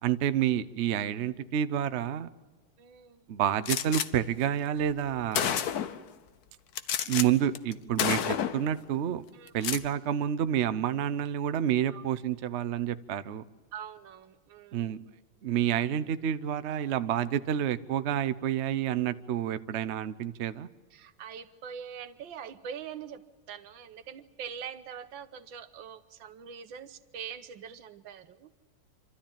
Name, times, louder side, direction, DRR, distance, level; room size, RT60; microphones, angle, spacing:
voice 1, 0.0-2.3 3.3-5.6 7.1-9.2 9.5-13.4 14.7-15.0 15.4-20.7, right 10 dB, 85° right, 12 dB, 0.6 m, -29 dB
voice 2, 2.8-3.3 9.3-9.7 11.9-12.0 13.7-15.0 20.9-28.5, right 7 dB, 70° right, 11 dB, 1.7 m, -43 dB
Gunshot gunfire, 3.7-4.1 4.9-5.0 5.3-6.0 6.8-7.3 7.6-7.7 8.0-8.7 9.5-9.9, left 9 dB, 60° left, 1.2 m, -29 dB
27.5 x 13.0 x 8.8 m, 1.3 s
omnidirectional pair, 2.2 m